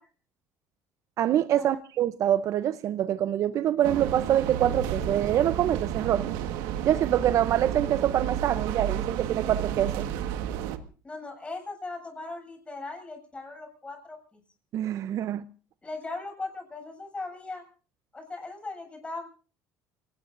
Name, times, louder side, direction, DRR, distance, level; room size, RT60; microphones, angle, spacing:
voice 1, 1.2-6.3 6.8-10.1 14.7-15.4, right 11 dB, 50° right, 0.7 m, -25 dB
sound 1, 3.8-10.8, right 10 dB, 80° right, 1.6 m, -31 dB
voice 2, 11.0-14.4 15.8-17.6 18.1-19.3, left 3 dB, 15° left, 7.9 m, -38 dB
28.0 x 19.0 x 2.6 m
cardioid pair, 120°, 7 cm